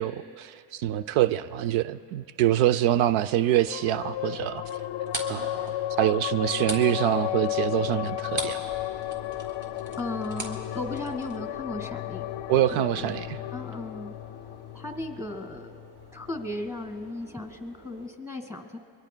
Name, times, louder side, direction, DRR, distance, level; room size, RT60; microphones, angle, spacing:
voice 1, 0.0-4.6 5.3-8.6 12.5-13.4, right 12 dB, 80° right, 13 dB, 0.5 m, -25 dB
sound 1, 3.7-16.5, left 14 dB, 60° left, 0.5 m, -34 dB
sound 2, 4.7-8.7 9.0-11.4, right 2 dB, 40° right, 2.7 m, -37 dB
sound 3, 8.0-18.1, right 2 dB, 55° right, 3.5 m, -51 dB
voice 2, 10.0-12.4 12.7-13.2 13.5-14.1 14.7-15.8 16.1-18.8, left 2 dB, 5° right, 6 dB, 1.6 m, -36 dB
28.0 x 23.5 x 2.2 m, 2.3 s
cardioid pair, 115°, 47 cm